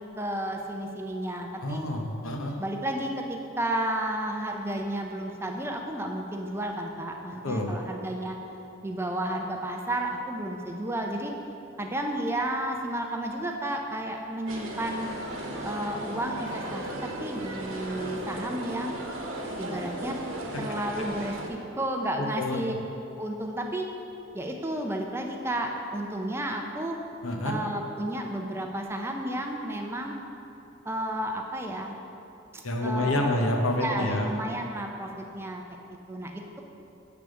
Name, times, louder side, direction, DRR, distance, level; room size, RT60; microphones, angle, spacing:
voice 1, 0.2-1.8 2.6-8.4 8.8-11.3 11.8-15.1 15.6-18.9 19.6-20.2 20.6-22.7 23.2-23.9 24.3-27.0 27.4-30.1 30.9-32.0 32.5-33.4 33.8-36.6, right 1 dB, 10° right, 2 dB, 0.4 m, -32 dB
voice 2, 1.6-2.5 7.4-7.7 22.2-22.6 27.2-27.6 32.6-34.3, left 1 dB, 90° left, 2 dB, 0.8 m, -28 dB
sound 1, 14.5-21.5, right 1 dB, 80° right, 0.9 m, -36 dB
7.9 x 3.5 x 6.1 m, 2.9 s
head